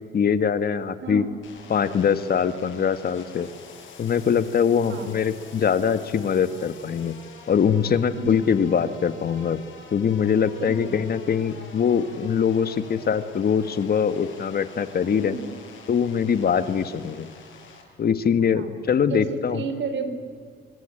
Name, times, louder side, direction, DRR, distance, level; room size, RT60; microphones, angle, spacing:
voice 1, 0.1-1.2 1.7-3.5 4.0-7.1 7.5-9.6 9.9-15.4 15.9-17.3 18.0-19.6, left 7 dB, 50° left, 11 dB, 1.6 m, -23 dB
voice 2, 1.0-1.3 4.9-5.1 8.1-8.5 10.6-11.0 15.2-15.4 18.5-18.7 19.1-20.1, right 4 dB, 70° right, 9 dB, 3.9 m, -32 dB
sound 1, 1.4-17.8, left 4 dB, 70° left, 7.8 m, -46 dB
24.5 x 24.0 x 9.1 m, 2.1 s
cardioid pair, 90°, 20 cm